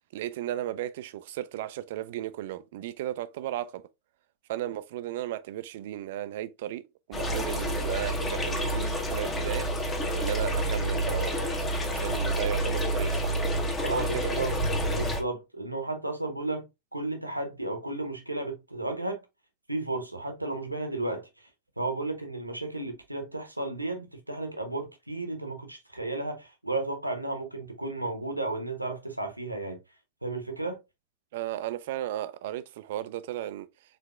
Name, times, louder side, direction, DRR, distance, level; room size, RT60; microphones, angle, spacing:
voice 1, 0.1-3.8 4.5-6.8 7.1-9.7 10.1-13.4 13.9-14.4 31.3-33.7, right 13 dB, 55° right, 0.3 m, -35 dB
sound 1, 7.1-15.2, right 1 dB, 20° left, 1.0 m, -28 dB
voice 2, 13.8-14.6 14.9-19.2 19.7-21.5 21.8-29.8 30.2-30.8, right 2 dB, 85° right, 0.9 m, -33 dB
4.5 x 3.3 x 2.3 m
figure-of-eight pair, 90°, 0 cm